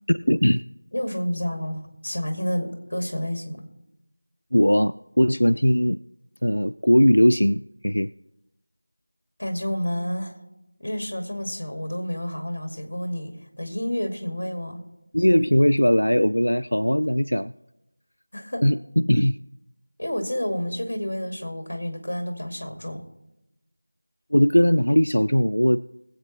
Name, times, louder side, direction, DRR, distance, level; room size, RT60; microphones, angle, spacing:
voice 1, 0.1-0.6 4.5-6.0 6.4-8.1 15.1-17.5 18.6-19.4 24.3-25.8, equal, 80° left, 14 dB, 0.3 m, -19 dB
voice 2, 0.9-3.6 9.4-10.3 10.8-14.9 18.3-18.6 20.0-23.1, equal, 50° left, 4 dB, 2.0 m, -29 dB
21.5 x 7.9 x 3.1 m, 0.90 s
figure-of-eight pair, 170°, 0 cm